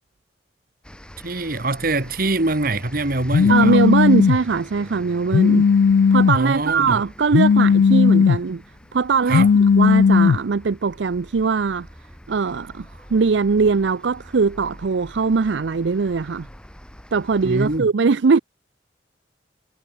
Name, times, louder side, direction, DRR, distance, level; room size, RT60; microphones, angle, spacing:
sound 1, 0.8-17.8, equal, 5° left, 3.8 m, -44 dB
voice 1, 1.2-3.8 6.3-7.0 9.3-9.5 17.4-17.9, right 2 dB, 50° right, 1.9 m, -24 dB
Telephone, 3.3-4.4 5.3-6.4 7.3-8.4 9.3-10.4, left 6 dB, 75° left, 0.3 m, -15 dB
voice 2, 3.5-5.7 6.1-8.6 8.9-9.5 9.8-11.9 12.3-16.5 17.1-18.4, right 5 dB, 75° right, 0.5 m, -20 dB
head